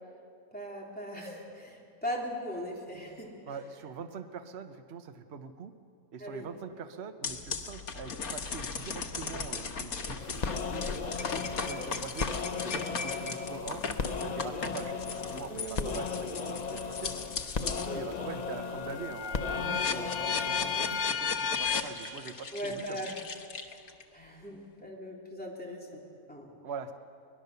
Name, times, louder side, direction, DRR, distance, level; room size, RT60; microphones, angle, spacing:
voice 1, 0.5-3.3 6.2-6.5 11.4-11.9 15.5-16.1 17.8-18.0 22.5-23.1 23.5-23.8 24.1-26.0 26.3-26.5, equal, 5° left, -3 dB, 3.6 m, -39 dB
voice 2, 3.5-5.7 6.1-12.3 12.6-13.8 14.2-17.1 17.6-23.1 26.6-26.9, right 6 dB, 50° right, 8 dB, 1.1 m, -43 dB
sound 1, 7.2-17.9 18.4-24.0, left 5 dB, 85° left, 1.7 m, -35 dB
sound 2, 10.2-21.1, left 5 dB, 35° left, 0.7 m, -36 dB
23.0 x 20.5 x 6.8 m, 2.4 s
omnidirectional pair, 1.5 m